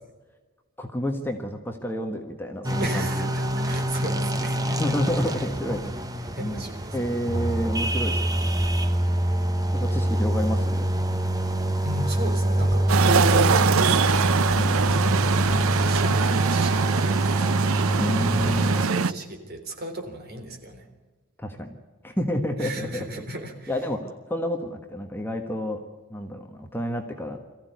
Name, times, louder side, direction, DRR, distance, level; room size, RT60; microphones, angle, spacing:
voice 1, 0.8-3.3 4.8-5.9 6.4-6.7 6.9-8.6 9.7-10.9 14.5-14.9 18.0-18.7 21.4-21.8 22.0-23.2 23.7-25.8 26.1-27.4, equal, 10° left, 4 dB, 1.5 m, -30 dB
sound 1, 2.6-18.9, right 1 dB, 15° right, 1.1 m, -25 dB
voice 2, 2.8-4.8 6.3-7.1 11.8-14.6 14.9-17.5 18.6-20.9 22.6-23.7, equal, 45° right, 4 dB, 3.7 m, -35 dB
sound 2, 12.9-19.1, right 6 dB, 75° right, 0.6 m, -23 dB
24.0 x 14.5 x 9.4 m, 1.3 s
head